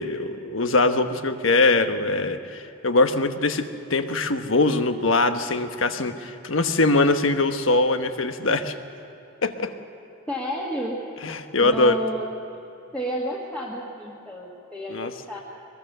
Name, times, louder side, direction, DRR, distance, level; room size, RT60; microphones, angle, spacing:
voice 1, 0.0-8.7 9.4-9.7 11.2-12.0 14.9-15.1, left 2 dB, 75° left, 8 dB, 1.2 m, -22 dB
voice 2, 10.3-11.0 11.6-12.3 12.9-15.4, equal, 5° left, -5 dB, 1.8 m, -31 dB
22.5 x 21.5 x 6.8 m, 3.0 s
head